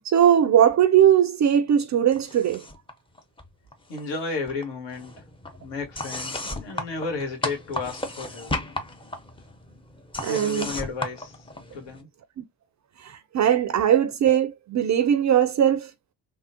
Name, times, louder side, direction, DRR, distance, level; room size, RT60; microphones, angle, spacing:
voice 1, 0.0-2.6 10.2-10.7 12.4-12.5 13.0-15.9, right 9 dB, 35° right, 0.5 m, -20 dB
sound 1, 2.1-2.9 3.2-4.2 4.5-12.0, left 1 dB, 10° left, 0.7 m, -35 dB
voice 2, 3.9-5.2 5.6-8.5 10.2-11.4 11.7-12.1, left 4 dB, 55° left, 1.5 m, -33 dB
3.5 x 2.0 x 2.7 m
hypercardioid pair, 45°, 50 cm